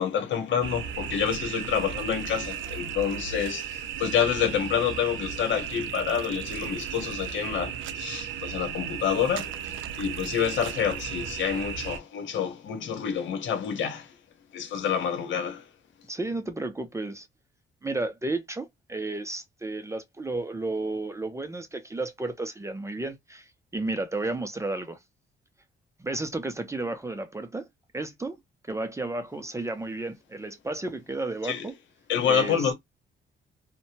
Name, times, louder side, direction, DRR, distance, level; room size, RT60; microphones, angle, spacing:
voice 1, 0.0-14.1 14.5-15.6 31.4-31.7 32.1-32.7, left 8 dB, 75° left, 0.9 m, -28 dB
sound 1, 0.6-12.0, right 9 dB, 75° right, 0.5 m, -35 dB
voice 2, 16.1-17.3 17.8-23.4 23.7-25.0 26.0-27.7 27.9-28.4 28.7-31.7 32.2-32.7, right 2 dB, 15° right, 0.5 m, -32 dB
2.7 x 2.1 x 2.8 m
cardioid pair, 90°, 20 cm